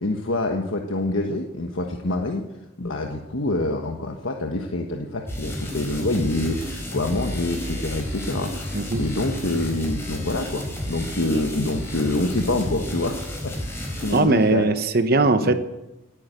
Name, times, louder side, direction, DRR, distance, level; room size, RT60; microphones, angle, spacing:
voice 1, 0.0-2.4 2.8-14.6 15.4-15.5, left 2 dB, 80° left, 3 dB, 1.4 m, -26 dB
sound 1, 5.3-14.2, equal, 10° left, 4.6 m, -31 dB
voice 2, 14.1-15.5, right 2 dB, 50° right, 9 dB, 1.0 m, -19 dB
18.0 x 9.7 x 8.2 m, 0.96 s
head